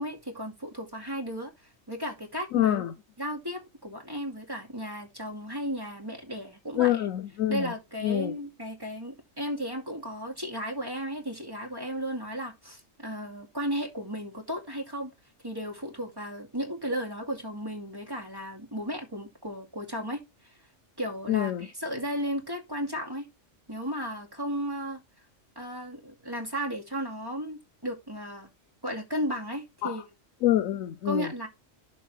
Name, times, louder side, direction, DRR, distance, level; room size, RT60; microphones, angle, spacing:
voice 1, 0.0-1.5 1.9-2.8 3.2-7.1 7.5-15.1 15.4-20.2 21.0-23.3 23.7-25.0 25.6-28.5 28.8-30.0 31.0-31.5, equal, 15° right, 2.6 m, -34 dB
voice 2, 2.5-2.9 6.8-7.7 8.0-8.3 21.3-21.7 29.8-30.0 30.4-31.3, left 12 dB, 85° left, 1.1 m, -26 dB
12.0 x 4.6 x 3.3 m
omnidirectional pair, 1.3 m